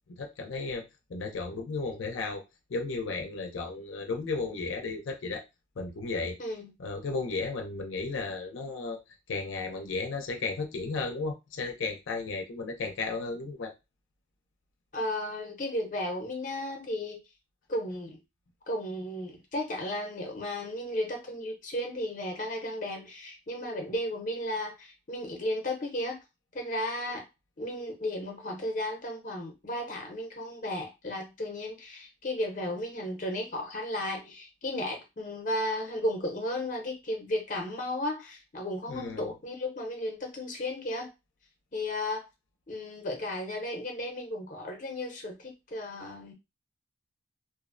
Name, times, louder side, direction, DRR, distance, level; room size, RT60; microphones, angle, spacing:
voice 1, 0.1-2.4 2.7-5.4 5.8-6.4 6.8-9.0 9.3-13.7 38.9-39.3, left 3 dB, 85° left, 0.5 m, -34 dB
voice 2, 6.4-6.7 14.9-17.2 17.7-18.2 18.7-26.2 26.5-27.2 27.6-41.1 41.7-42.2 42.7-46.3, left 1 dB, 40° left, 0.6 m, -34 dB
2.5 x 2.0 x 2.5 m
head